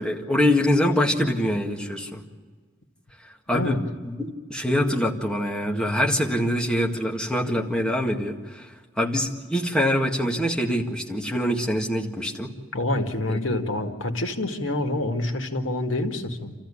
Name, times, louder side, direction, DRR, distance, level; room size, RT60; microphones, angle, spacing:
voice 1, 0.0-2.2 3.5-3.8 4.0-12.5 13.3-13.4, left 1 dB, 5° left, 0 dB, 1.9 m, -24 dB
voice 2, 12.7-16.5, left 1 dB, 80° left, 4 dB, 2.0 m, -27 dB
26.5 x 14.5 x 9.9 m, 1.5 s
head